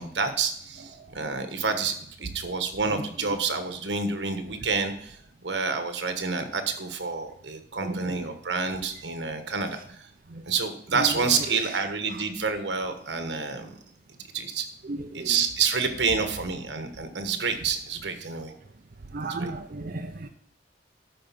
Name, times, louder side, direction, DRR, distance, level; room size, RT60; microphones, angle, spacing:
voice 1, 0.0-2.0 2.2-5.2 5.4-10.1 10.4-13.7 14.3-14.7 15.1-18.5 19.2-19.5, right 5 dB, 80° right, 7 dB, 1.4 m, -28 dB
voice 2, 7.8-8.3 10.3-10.4 10.9-11.1 11.5-12.2 14.8-15.4 19.1-20.3, right 2 dB, 55° right, 4 dB, 0.7 m, -35 dB
12.5 x 5.2 x 6.0 m, 0.64 s
head